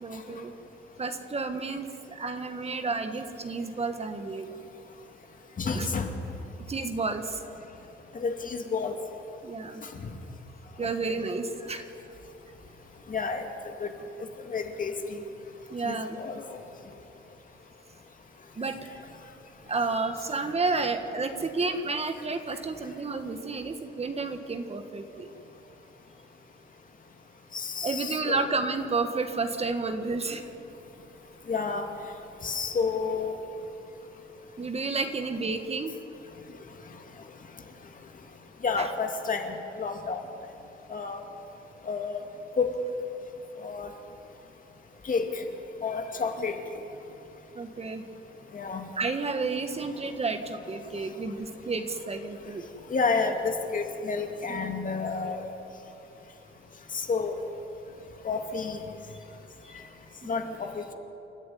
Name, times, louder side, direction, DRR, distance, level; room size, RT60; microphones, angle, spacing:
voice 1, 0.0-0.5 1.0-4.5 5.7-5.9 6.7-7.4 9.4-9.8 10.8-11.8 15.7-16.1 18.6-18.7 19.7-25.3 27.8-30.5 34.6-35.9 38.8-38.9 46.4-46.5 47.5-48.0 49.0-52.7 54.5-54.7 59.6-59.7 60.4-60.6, right 3 dB, 30° right, 7 dB, 1.6 m, -31 dB
voice 2, 5.6-6.1 8.1-9.0 10.0-10.1 11.0-11.1 13.1-13.5 13.8-13.9 14.5-15.2 15.8-16.6 27.5-28.5 31.5-31.8 32.4-33.4 38.6-40.2 40.9-41.2 41.9-42.2 42.6-42.7 43.6-43.9 45.0-45.4 45.8-46.6 48.5-48.9 52.9-55.5 56.9-57.4 58.2-58.8 60.3-60.9, left 4 dB, 45° left, 4 dB, 2.4 m, -30 dB
28.5 x 11.0 x 9.4 m, 3.0 s
cardioid pair, 90°, 20 cm